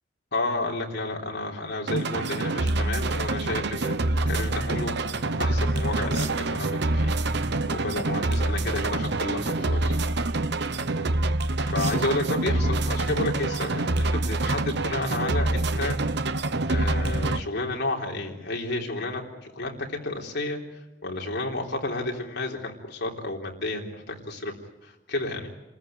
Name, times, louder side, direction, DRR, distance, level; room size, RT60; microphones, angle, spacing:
voice 1, 0.3-7.1 7.7-10.0 11.6-16.0 16.7-20.6 21.0-24.5 24.8-25.5, left 2 dB, 60° left, 0 dB, 3.6 m, -31 dB
sound 1, 1.9-17.4, right 2 dB, 60° right, 0.9 m, -26 dB
28.5 x 14.5 x 9.2 m, 0.99 s
head